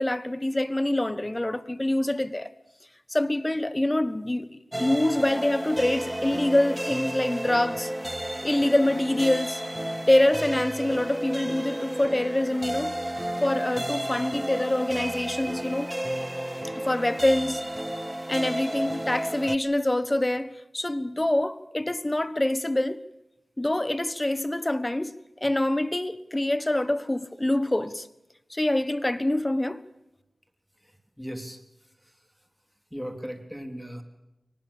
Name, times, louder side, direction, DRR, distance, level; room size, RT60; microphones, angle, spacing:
voice 1, 0.0-2.5 3.1-7.9 8.4-9.6 10.1-12.9 13.4-15.9 16.8-17.6 18.3-23.0 23.6-25.1 25.4-28.1 28.5-29.8, left 1 dB, 25° left, 1.3 m, -25 dB
sound 1, 4.7-19.6, right 1 dB, 15° right, 1.0 m, -32 dB
voice 2, 31.2-31.6 32.9-34.0, equal, 5° left, 3.4 m, -36 dB
23.5 x 19.0 x 7.1 m
cardioid pair, 45°, 0 cm